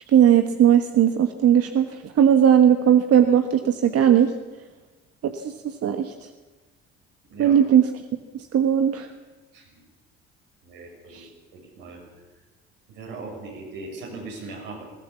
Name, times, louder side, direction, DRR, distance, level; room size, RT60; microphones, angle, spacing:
voice 1, 0.1-4.3 5.2-6.1 7.4-7.9 8.5-9.1 11.1-11.3, right 9 dB, 50° right, 7 dB, 1.4 m, -18 dB
voice 2, 10.6-11.2 11.5-12.0 12.9-14.8, right 3 dB, 75° right, -1 dB, 7.2 m, -39 dB
20.5 x 17.5 x 7.3 m, 1.3 s
hypercardioid pair, 55°, 31 cm